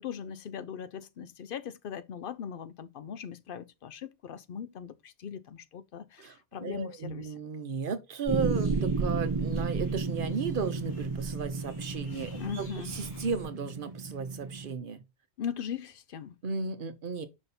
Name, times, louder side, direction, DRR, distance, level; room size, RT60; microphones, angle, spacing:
voice 1, 0.0-7.3 12.3-12.9 15.4-16.4, left 8 dB, 60° left, 0.7 m, -39 dB
voice 2, 6.2-15.0 16.4-17.3, right 5 dB, 55° right, 1.0 m, -35 dB
sound 1, 8.2-13.5, right 3 dB, 80° left, 3.5 m, -40 dB
sound 2, 8.3-14.7, right 4 dB, 30° right, 0.5 m, -33 dB
5.6 x 4.0 x 4.2 m
omnidirectional pair, 1.2 m